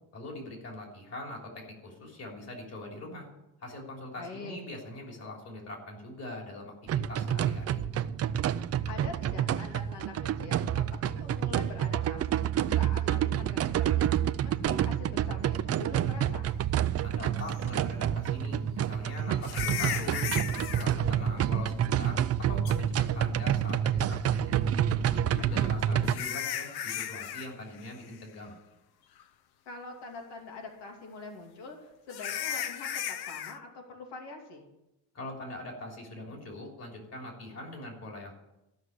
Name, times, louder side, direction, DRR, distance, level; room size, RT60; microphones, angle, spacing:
voice 1, 0.1-3.3 3.6-7.9 17.0-20.2 20.5-22.2 22.5-24.5 25.0-28.6 35.1-38.3, left 1 dB, 40° left, 0 dB, 3.4 m, -42 dB
voice 2, 4.2-4.6 8.9-12.5 12.8-14.1 14.4-16.5 25.4-26.1 29.7-34.7, left 3 dB, 90° left, 1 dB, 2.7 m, -44 dB
sound 1, 6.9-26.1, right 10 dB, 40° right, 0.4 m, -28 dB
sound 2, 17.5-17.6 19.4-20.9 22.6-22.8 25.3-27.5 27.7-28.1 28.5-28.6 29.2-29.3 32.1-33.6, left 10 dB, 65° left, 0.8 m, -35 dB
14.5 x 6.3 x 9.5 m, 0.92 s
cardioid pair, 175°, 41 cm